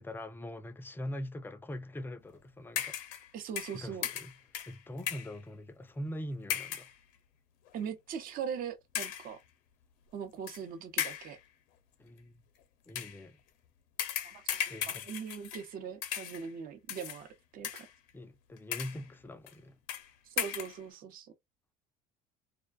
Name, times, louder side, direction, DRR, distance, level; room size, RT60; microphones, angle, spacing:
voice 1, 0.0-3.0 3.7-4.3 4.7-6.9 12.0-12.4 12.9-13.4 14.7-15.0 18.1-19.8, left 1 dB, 10° left, 0.4 m, -42 dB
sound 1, 2.8-3.3 3.6-5.4 6.5-6.9 7.7-7.8 8.9-9.3 10.5-10.6 11.0-11.4 12.9-13.2 14.0-15.7 16.0-16.5 16.9-17.2 17.6-18.1 18.6-19.0 19.5-19.6 19.9-20.1 20.4-20.8, left 10 dB, 70° left, 0.6 m, -37 dB
voice 2, 3.3-4.1 7.7-9.4 10.1-11.4 14.2-17.9 20.4-21.3, right 7 dB, 50° right, 0.7 m, -41 dB
2.4 x 2.2 x 2.3 m
supercardioid pair, 85°, 18 cm